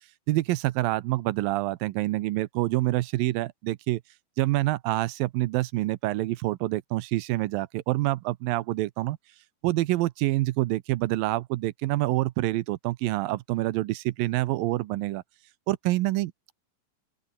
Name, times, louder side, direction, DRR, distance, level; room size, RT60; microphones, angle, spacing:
voice 1, 0.3-4.0 4.4-9.2 9.6-15.2 15.7-16.5, right 17 dB, 75° right, 2.4 m, -27 dB
open air
omnidirectional pair, 4.3 m